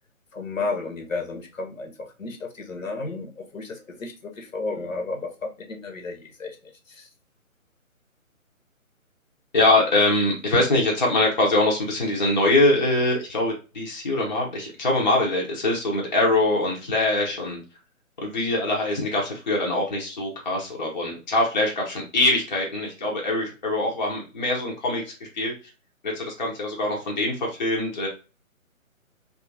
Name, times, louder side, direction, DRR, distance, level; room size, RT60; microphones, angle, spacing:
voice 1, 0.3-6.6 6.9-7.1, left 3 dB, 70° left, 3 dB, 0.8 m, -33 dB
voice 2, 9.5-17.6 18.2-25.5 26.0-28.1, left 2 dB, 35° left, -2 dB, 0.6 m, -23 dB
2.7 x 2.4 x 2.6 m, 0.32 s
figure-of-eight pair, 145°, 42 cm